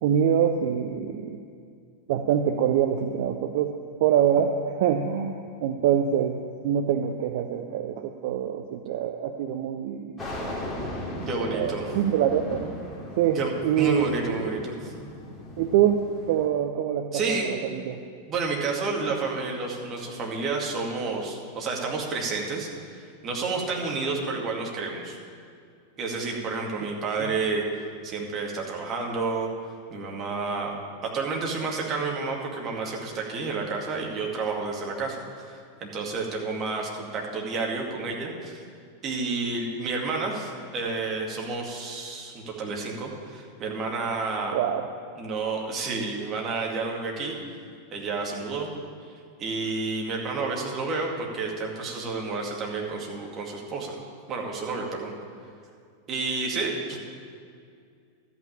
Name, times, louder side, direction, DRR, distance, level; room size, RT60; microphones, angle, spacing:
voice 1, 0.0-1.4 2.1-10.2 11.5-12.7 13.1-14.3 15.6-18.0 44.5-44.8, right 9 dB, 50° right, 6 dB, 0.6 m, -25 dB
sound 1, 10.2-16.5, left 1 dB, 15° left, 2.4 m, -37 dB
voice 2, 11.3-11.9 13.3-14.7 17.1-17.5 18.3-23.0 23.2-25.2 26.0-27.6 28.0-29.5 29.9-30.7 31.1-35.2 35.8-38.6 39.0-44.6 45.2-47.4 47.9-48.7 49.4-54.0 54.3-55.1 56.1-57.0, right 4 dB, 30° right, -1 dB, 2.3 m, -30 dB
13.0 x 6.0 x 8.9 m, 2.3 s
figure-of-eight pair, 90°, 0 cm